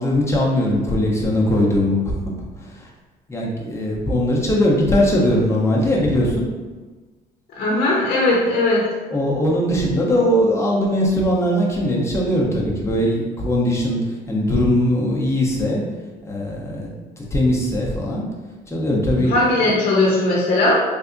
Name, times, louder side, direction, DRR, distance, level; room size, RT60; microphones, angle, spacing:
voice 1, 0.0-2.2 3.3-6.4 9.1-14.0 14.3-15.8 16.2-16.9 17.2-18.2 18.7-19.5, left 1 dB, 15° left, -3 dB, 0.7 m, -20 dB
voice 2, 7.6-8.8 19.2-20.8, left 2 dB, 60° left, -5 dB, 0.8 m, -18 dB
3.4 x 2.6 x 2.6 m, 1.3 s
cardioid pair, 110°, 17 cm